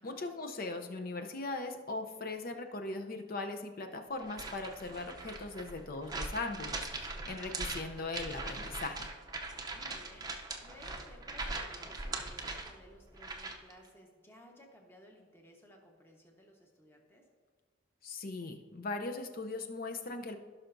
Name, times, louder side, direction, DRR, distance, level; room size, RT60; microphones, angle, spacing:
voice 1, 0.0-9.1 18.0-20.4, left 3 dB, 45° left, 6 dB, 0.6 m, -39 dB
sound 1, 4.2-13.7, right 3 dB, 20° right, 0.6 m, -41 dB
voice 2, 9.6-10.3 10.6-17.2, equal, 10° left, 0 dB, 1.1 m, -58 dB
16.5 x 5.7 x 2.6 m, 1.6 s
head